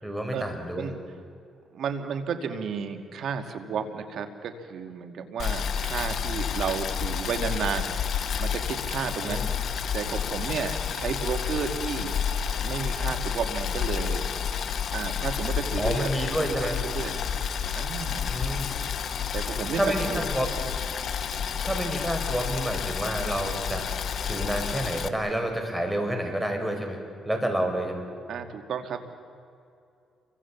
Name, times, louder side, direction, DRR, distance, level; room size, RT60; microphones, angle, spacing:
voice 1, 0.0-1.0 9.2-9.5 15.8-16.8 18.3-18.7 19.7-20.5 21.6-23.9 24.2-27.0 27.3-28.1, right 1 dB, 5° right, 4 dB, 5.4 m, -29 dB
voice 2, 1.7-7.9 8.4-9.4 9.9-12.2 12.6-14.3 14.9-16.1 16.6-17.2 17.7-18.3 19.3-19.8 20.1-20.3 28.3-29.0, right 6 dB, 70° right, 7 dB, 2.5 m, -32 dB
Boiling, 5.4-25.1, left 7 dB, 60° left, 1.5 m, -30 dB
29.0 x 24.5 x 7.5 m, 2.5 s
cardioid pair, 90°, 0 cm